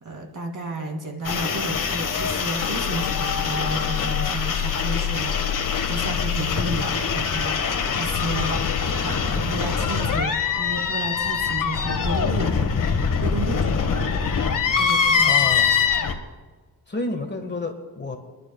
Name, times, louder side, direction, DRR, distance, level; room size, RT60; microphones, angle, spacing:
voice 1, 0.0-12.7 13.2-14.0 14.8-15.4, right 2 dB, 50° right, 2 dB, 2.5 m, -32 dB
sound 1, 1.2-16.1, left 6 dB, 55° left, 1.5 m, -23 dB
voice 2, 15.2-15.7 16.9-18.2, left 2 dB, 25° left, 5 dB, 1.5 m, -30 dB
28.0 x 11.0 x 2.3 m, 1.4 s
cardioid pair, 100°, 39 cm